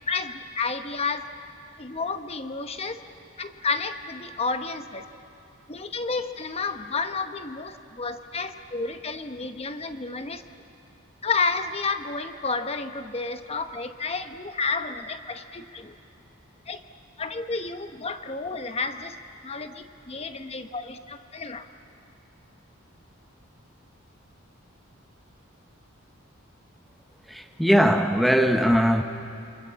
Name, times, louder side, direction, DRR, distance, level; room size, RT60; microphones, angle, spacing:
voice 1, 0.1-1.2 1.8-3.0 3.4-5.0 5.7-10.4 11.2-16.0 16.7-16.8 17.2-19.2 19.4-21.7, left 4 dB, 30° left, 1.0 m, -31 dB
voice 2, 27.3-29.0, equal, ahead, 0.8 m, -20 dB
28.0 x 24.5 x 7.5 m
head